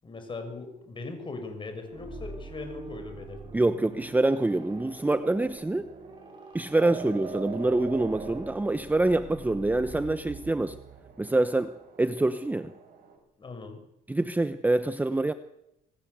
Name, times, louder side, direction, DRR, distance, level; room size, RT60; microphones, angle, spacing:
voice 1, 0.0-3.5 6.9-7.0 13.4-13.8, left 3 dB, 30° left, 7 dB, 6.2 m, -40 dB
sound 1, 1.8-11.6, right 3 dB, 30° right, 7.1 m, -45 dB
voice 2, 3.5-5.9 6.5-10.8 11.2-12.7 14.1-15.3, right 2 dB, 10° right, 11 dB, 0.9 m, -26 dB
sound 2, 5.2-13.1, right 5 dB, 55° right, 7.8 m, -44 dB
26.5 x 19.5 x 8.1 m, 0.86 s
cardioid pair, 110°, 17 cm